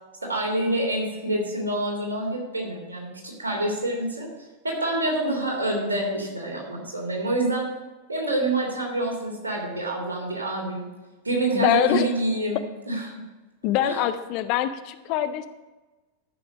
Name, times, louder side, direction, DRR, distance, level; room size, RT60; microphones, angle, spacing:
voice 1, 0.2-4.3 4.6-7.7 8.1-10.9 11.2-13.2 13.8-14.0, right 1 dB, 75° right, -1 dB, 3.1 m, -27 dB
voice 2, 11.5-12.1 13.6-15.5, left 12 dB, 45° left, 11 dB, 0.6 m, -24 dB
13.0 x 6.1 x 5.2 m, 1.2 s
figure-of-eight pair, 90°, 0 cm